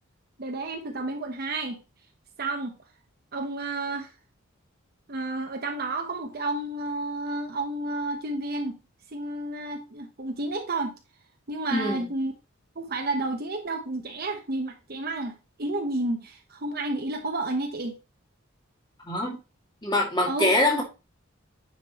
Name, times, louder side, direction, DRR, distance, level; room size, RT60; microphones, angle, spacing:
voice 1, 0.4-1.8 2.4-2.8 3.3-4.1 5.1-8.8 9.1-11.0 11.5-12.3 12.8-18.0 20.3-20.5, right 2 dB, 45° right, 1.0 m, -31 dB
voice 2, 11.7-12.0 19.0-19.4 19.8-20.8, left 1 dB, 20° left, 2.3 m, -24 dB
9.5 x 5.2 x 3.0 m
head